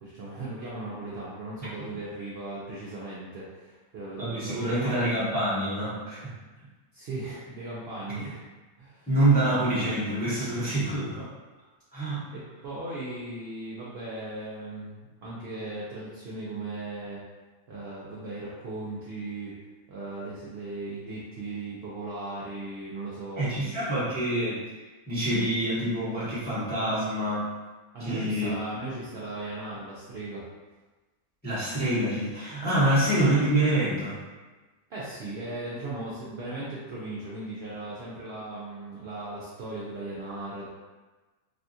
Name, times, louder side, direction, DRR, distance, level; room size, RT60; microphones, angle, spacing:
voice 1, 0.0-5.0 6.9-8.4 8.8-9.1 12.3-17.2 17.7-19.5 19.9-23.8 27.9-30.5 34.9-40.7, right 2 dB, 60° right, -7 dB, 0.7 m, -37 dB
voice 2, 4.2-6.3 9.1-11.3 11.9-12.2 23.3-24.6 25.1-27.4 28.0-28.5 31.4-34.2, right 1 dB, 10° left, -10 dB, 0.7 m, -26 dB
3.4 x 2.3 x 2.7 m, 1.2 s
omnidirectional pair, 1.6 m